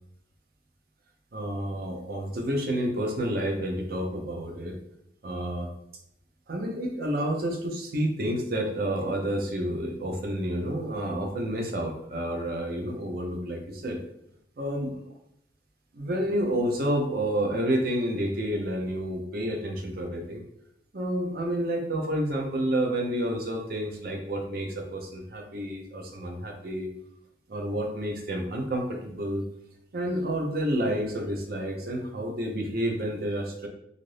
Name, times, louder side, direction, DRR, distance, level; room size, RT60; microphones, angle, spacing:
voice 1, 1.3-4.7 5.2-5.7 6.5-14.0 14.6-14.9 15.9-20.4 20.9-26.9 27.5-29.4 29.9-33.7, right 1 dB, 55° right, 2 dB, 0.6 m, -29 dB
2.6 x 2.5 x 3.2 m, 0.76 s
head